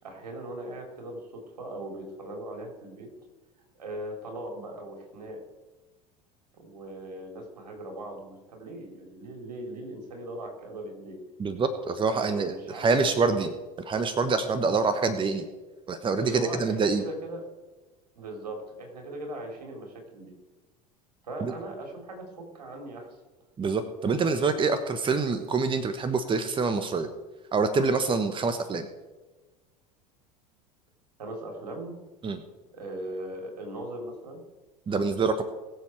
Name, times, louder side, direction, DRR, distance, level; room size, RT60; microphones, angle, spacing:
voice 1, 0.0-3.1 3.8-5.4 6.5-11.2 12.1-13.4 16.2-17.4 18.2-20.3 21.2-23.2 31.2-32.0 32.7-34.4, right 1 dB, 75° right, 2 dB, 3.6 m, -39 dB
voice 2, 11.4-13.5 13.8-15.5 15.9-17.0 21.4-21.5 23.6-27.1 27.5-28.9 32.2-32.4 34.9-35.4, right 4 dB, 25° right, 10 dB, 1.2 m, -26 dB
21.0 x 7.3 x 4.6 m, 1.2 s
figure-of-eight pair, 75°, 20 cm